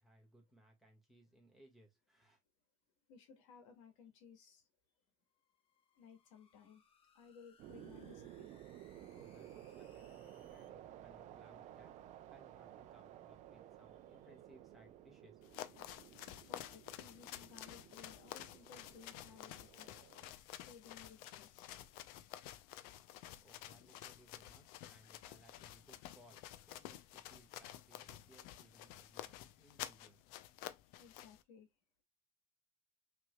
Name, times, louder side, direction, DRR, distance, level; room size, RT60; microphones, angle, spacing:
voice 1, 0.0-2.4 9.1-12.0 12.3-15.4 23.4-26.4 26.7-30.2, right 1 dB, ahead, 1.8 m, -65 dB
voice 2, 3.1-4.6 5.9-6.8 7.1-8.5 16.1-19.9 20.6-21.7 31.0-31.7, left 6 dB, 80° left, 1.6 m, -59 dB
sound 1, 5.3-10.7, left 6 dB, 35° left, 0.9 m, -72 dB
sound 2, 7.6-20.3, right 12 dB, 45° right, 0.6 m, -55 dB
sound 3, 15.4-31.4, left 13 dB, 60° left, 0.6 m, -51 dB
5.8 x 3.4 x 2.3 m
supercardioid pair, 120°, 17 cm